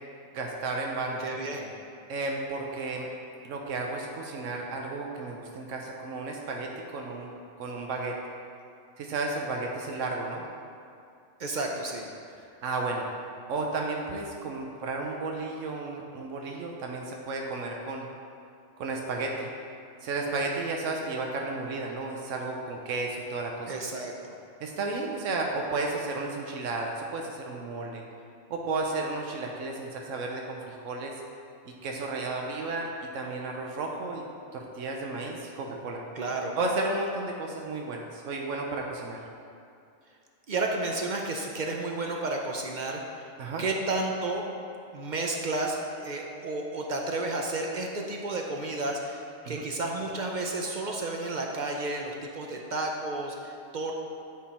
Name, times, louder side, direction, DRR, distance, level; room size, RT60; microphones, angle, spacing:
voice 1, 0.3-1.2 2.1-3.1 3.4-7.3 7.6-8.1 9.0-10.4 12.6-13.1 13.5-18.1 18.8-19.5 20.0-23.7 24.6-28.1 28.5-31.2 31.6-34.2 34.5-36.0 36.6-39.2 43.4-43.6 49.4-49.7, right 3 dB, 85° right, 0 dB, 1.0 m, -33 dB
voice 2, 1.2-1.7 11.4-12.1 23.7-24.3 36.1-36.6 40.5-43.0 43.6-44.5 44.9-53.9, right 2 dB, 50° right, 1 dB, 0.6 m, -32 dB
9.5 x 3.8 x 4.2 m, 2.5 s
omnidirectional pair, 1.3 m